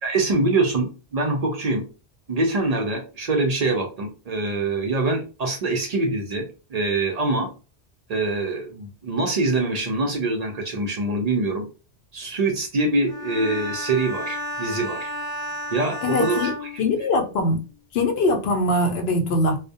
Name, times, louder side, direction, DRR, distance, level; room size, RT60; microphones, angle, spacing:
voice 1, 0.0-1.9 2.3-7.5 8.1-11.7 12.1-15.1 15.7-16.8, right 2 dB, 60° right, 0.4 m, -24 dB
Bowed string instrument, 13.1-17.6, left 1 dB, 25° left, 0.5 m, -32 dB
voice 2, 16.0-16.5 16.8-17.6 17.9-19.6, left 2 dB, 70° left, 0.8 m, -22 dB
2.3 x 2.1 x 2.6 m
omnidirectional pair, 1.1 m